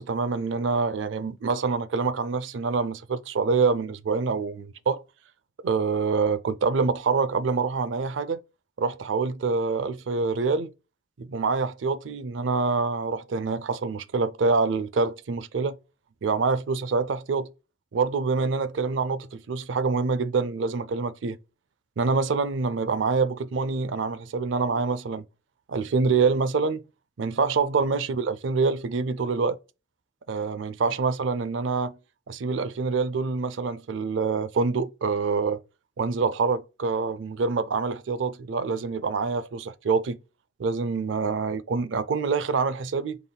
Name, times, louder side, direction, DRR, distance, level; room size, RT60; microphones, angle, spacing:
voice 1, 0.0-5.0 5.6-8.4 8.8-10.7 11.2-15.8 16.2-17.5 17.9-21.4 22.0-25.2 25.7-26.8 27.2-29.6 30.3-32.0 32.3-35.6 36.0-40.2 40.6-43.2, right 4 dB, 70° right, 0.4 m, -26 dB
5.3 x 3.9 x 2.2 m
head